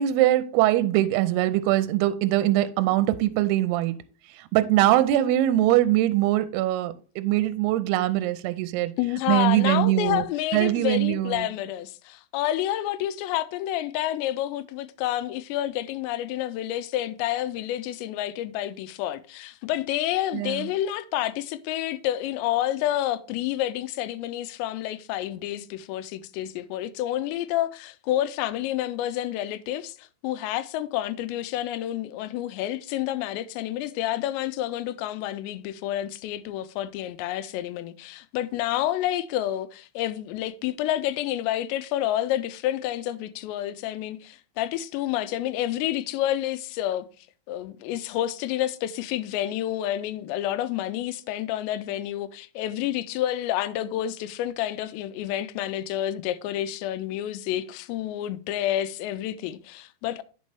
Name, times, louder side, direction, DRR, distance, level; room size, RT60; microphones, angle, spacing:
voice 1, 0.0-3.9 4.5-8.9 9.3-10.2 10.5-11.5 20.3-20.6, right 14 dB, 80° right, 2.4 m, -22 dB
voice 2, 9.0-47.1 47.5-60.2, left 13 dB, 90° left, 2.8 m, -29 dB
9.5 x 5.3 x 3.3 m
omnidirectional pair, 4.9 m